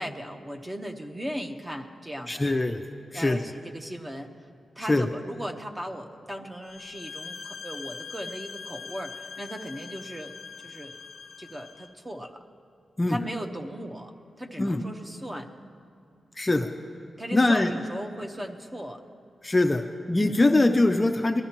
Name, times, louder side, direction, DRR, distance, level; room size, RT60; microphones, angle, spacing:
voice 1, 0.0-2.5 3.1-4.3 4.8-10.3 10.6-10.9 11.4-12.4 13.1-15.5 17.2-19.0 20.2-20.5, equal, 15° right, 3 dB, 0.9 m, -37 dB
voice 2, 2.3-2.8 3.1-3.4 4.9-5.1 13.0-13.2 14.6-14.8 16.4-16.7 17.3-17.7 19.4-21.4, left 2 dB, 20° left, 5 dB, 0.5 m, -22 dB
sound 1, 6.6-11.9, left 5 dB, 85° left, 0.7 m, -42 dB
20.5 x 13.5 x 2.9 m, 2.6 s
wide cardioid pair, 115°, 0 cm